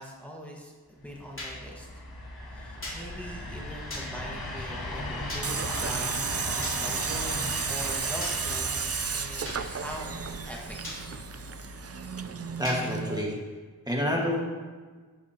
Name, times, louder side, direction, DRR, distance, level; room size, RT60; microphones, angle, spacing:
voice 1, 0.0-1.9 2.5-6.1 6.5-10.6 12.1-12.6, equal, 5° left, -2 dB, 1.6 m, -42 dB
sound 1, 1.1-13.0, left 1 dB, 85° left, 2.0 m, -38 dB
sound 2, 1.4-1.5 2.8-3.0 3.9-4.1 5.3-5.5 6.6-6.8 8.2-8.4 9.4-9.6 10.8-11.0 12.6-12.8, left 1 dB, 35° left, 3.1 m, -37 dB
Tools, 5.4-13.2, right 6 dB, 45° right, 0.5 m, -33 dB
voice 2, 12.6-13.4 13.9-14.4, left 1 dB, 10° right, -2 dB, 1.6 m, -28 dB
13.5 x 7.3 x 2.9 m, 1.4 s
wide cardioid pair, 55°, 36 cm